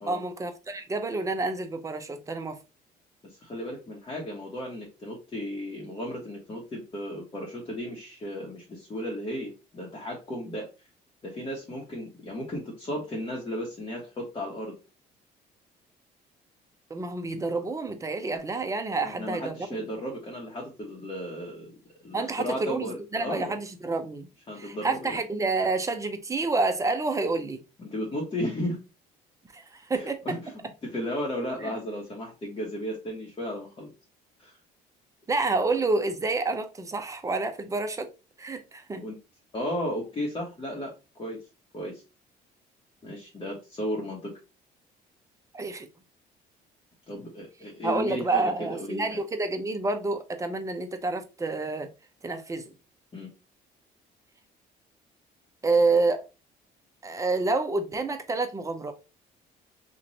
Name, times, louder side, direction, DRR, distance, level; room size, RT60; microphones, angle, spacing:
voice 1, 0.1-2.6 16.9-19.8 22.1-24.3 24.5-27.6 29.5-30.4 31.6-31.7 35.3-38.1 38.4-39.0 45.5-45.9 47.8-51.9 52.2-52.7 55.6-56.2 57.0-58.9, right 3 dB, 20° right, 0.7 m, -28 dB
voice 2, 3.2-10.7 11.2-14.8 19.0-21.7 22.0-23.6 24.5-25.2 27.8-28.8 29.9-30.5 30.8-33.9 34.4-34.5 39.0-39.2 39.5-41.4 41.7-42.0 43.0-44.3 47.1-49.2 53.1-53.3, equal, 30° left, 1.2 m, -35 dB
3.1 x 2.6 x 4.0 m
cardioid pair, 110°, 17 cm